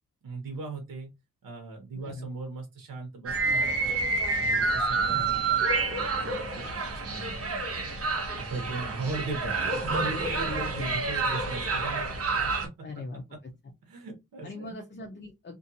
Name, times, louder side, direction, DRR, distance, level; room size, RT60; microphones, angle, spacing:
voice 1, 0.2-1.1 1.4-4.0 4.3-5.6 6.1-6.7 6.9-7.4 8.4-12.4 13.8-14.8, right 3 dB, 80° right, 1.0 m, -38 dB
sound 1, 3.3-12.7, right 3 dB, 45° right, 0.9 m, -28 dB
voice 2, 10.5-11.0 12.8-13.2 14.4-15.5, left 2 dB, 30° left, 0.7 m, -39 dB
2.6 x 2.5 x 2.7 m
cardioid pair, 90°, 34 cm